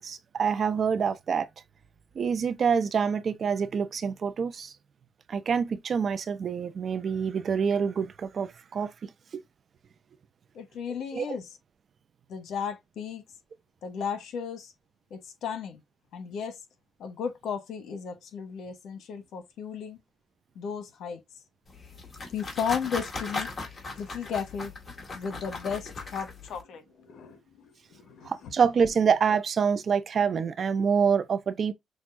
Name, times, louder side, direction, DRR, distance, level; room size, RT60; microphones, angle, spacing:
voice 1, 0.0-1.5 2.2-4.7 5.3-9.4 11.1-11.3 28.2-31.7, right 6 dB, 50° right, 0.6 m, -26 dB
voice 2, 10.5-11.5 12.3-13.2 13.8-14.7 15.1-15.8 16.1-16.6 17.0-20.0 20.5-21.2 22.3-23.5 24.0-24.7 25.1-28.5, left 7 dB, 75° left, 1.1 m, -35 dB
sound 1, 21.7-26.6, left 3 dB, 35° left, 1.9 m, -38 dB
6.2 x 2.3 x 2.5 m
cardioid pair, 90°, 0 cm